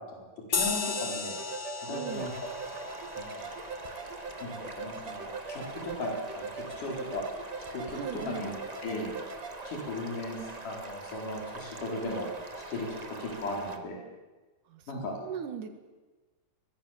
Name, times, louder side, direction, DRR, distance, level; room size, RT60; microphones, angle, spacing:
voice 1, 0.1-1.3 1.9-2.3 3.2-3.5 4.4-7.2 7.7-8.5 8.8-9.1 9.7-12.3 12.6-12.9 13.2-14.0 14.9-15.1, left 1 dB, 75° left, -1 dB, 6.0 m, -37 dB
sound 1, 0.5-5.4, left 5 dB, 50° left, 1.1 m, -36 dB
sound 2, 0.8-9.6, right 4 dB, 55° right, 3.1 m, -42 dB
voice 2, 1.8-2.3 7.9-8.5 14.7-15.7, right 7 dB, 75° right, 7 dB, 3.4 m, -40 dB
sound 3, 2.1-13.8, right 2 dB, 35° right, 0.6 m, -44 dB
23.5 x 20.5 x 7.4 m, 1.2 s
omnidirectional pair, 3.7 m